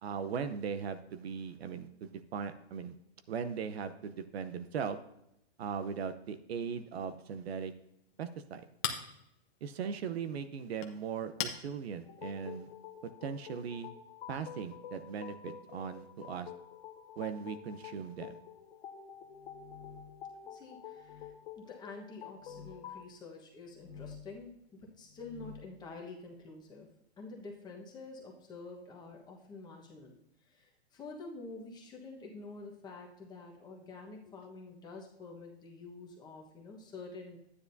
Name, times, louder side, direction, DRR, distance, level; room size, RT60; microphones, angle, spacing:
voice 1, 0.0-2.9 3.3-5.0 5.6-7.7 8.2-8.7 9.6-12.7 13.2-13.9 14.3-16.5 17.2-18.4, right 6 dB, 70° right, 10 dB, 0.9 m, -39 dB
Chink clink, 7.5-13.1, left 9 dB, 30° left, 0.8 m, -44 dB
sound 1, 12.0-23.1, left 9 dB, 55° left, 1.2 m, -49 dB
sound 2, 19.3-20.3 21.0-21.3 22.3-22.8 23.7-24.4 25.0-25.7, left 6 dB, 80° left, 1.7 m, -51 dB
voice 2, 20.4-26.9 27.2-30.1 30.4-37.4, left 3 dB, 15° left, 0 dB, 1.2 m, -48 dB
12.0 x 9.8 x 2.7 m, 0.79 s
hypercardioid pair, 155°, 32 cm